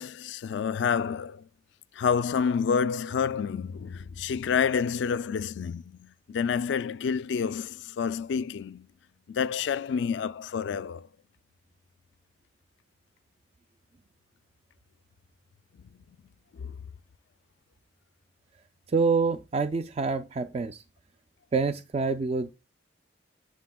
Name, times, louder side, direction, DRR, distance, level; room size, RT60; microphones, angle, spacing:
voice 1, 0.0-1.5 1.9-8.9 9.3-11.1 15.8-15.9 16.5-16.8, left 6 dB, 70° left, 0.3 m, -29 dB
voice 2, 18.9-20.8 21.5-22.5, right 4 dB, 35° right, 0.3 m, -26 dB
9.2 x 7.5 x 2.2 m
head